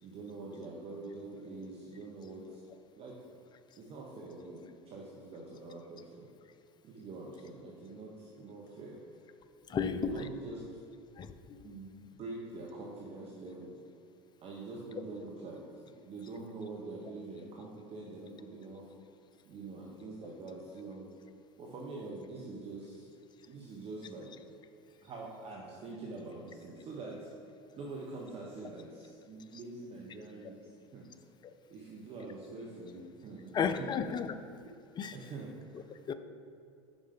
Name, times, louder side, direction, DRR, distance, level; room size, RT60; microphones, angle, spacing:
voice 1, 0.0-2.6 3.0-3.2 3.8-6.2 6.8-9.0 9.7-10.8 11.6-13.8 14.4-15.6 16.0-18.9 19.5-21.0 21.6-23.1 23.5-24.3 25.0-27.3 27.7-30.6 30.9-31.1 31.7-34.0 35.1-35.9, right 3 dB, 40° right, -3 dB, 1.0 m, -45 dB
voice 2, 9.7-10.1 11.2-11.7 31.4-31.5 33.5-34.3 35.0-35.2 36.1-36.2, left 7 dB, 30° left, 10 dB, 0.5 m, -33 dB
5.2 x 5.1 x 5.3 m, 2.5 s
hypercardioid pair, 80°, 15 cm